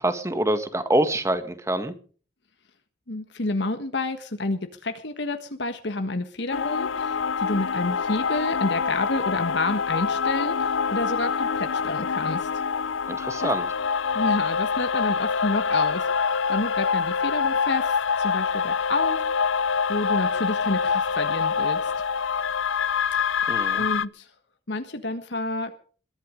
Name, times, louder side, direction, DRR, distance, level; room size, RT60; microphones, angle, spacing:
voice 1, 0.0-1.9 13.1-13.7 23.5-23.8, right 1 dB, 15° right, 10 dB, 1.8 m, -25 dB
voice 2, 3.1-12.5 13.4-13.5 14.1-19.2 19.9-21.9 23.8-24.3 24.7-25.7, left 2 dB, 60° left, 7 dB, 1.5 m, -29 dB
sound 1, 6.5-24.0, left 6 dB, 85° left, 0.6 m, -25 dB
22.0 x 11.5 x 5.2 m, 0.42 s
head